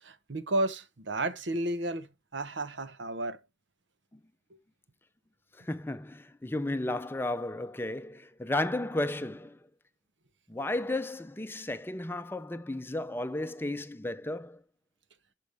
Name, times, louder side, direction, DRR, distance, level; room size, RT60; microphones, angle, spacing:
voice 1, 0.0-3.4, right 2 dB, 85° right, 0.9 m, -32 dB
voice 2, 5.6-9.6 10.5-14.6, left 1 dB, 10° left, 0.5 m, -33 dB
12.0 x 5.6 x 3.3 m
head